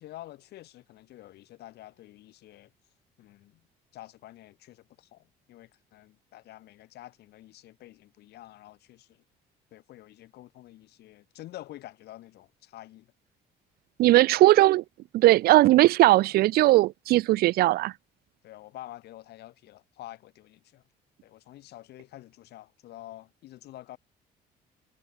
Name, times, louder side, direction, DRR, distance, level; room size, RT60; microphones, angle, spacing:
voice 1, 0.0-2.7 3.2-3.6 3.9-9.2 9.7-13.1 18.4-20.8 21.2-24.0, left 15 dB, 75° left, 5.9 m, -48 dB
voice 2, 14.0-14.8 15.1-17.9, right 17 dB, 65° right, 0.4 m, -19 dB
cardioid pair, 110°, 17 cm